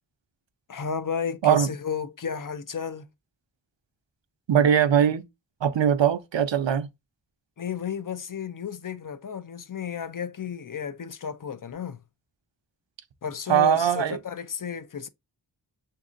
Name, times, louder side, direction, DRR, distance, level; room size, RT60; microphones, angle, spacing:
voice 1, 0.7-3.1 7.6-12.0 13.2-15.1, left 7 dB, 45° left, 0.5 m, -33 dB
voice 2, 4.5-5.2 5.6-6.9 13.5-14.2, right 9 dB, 75° right, 0.6 m, -21 dB
7.1 x 2.7 x 2.5 m
wide cardioid pair, 60°, 45 cm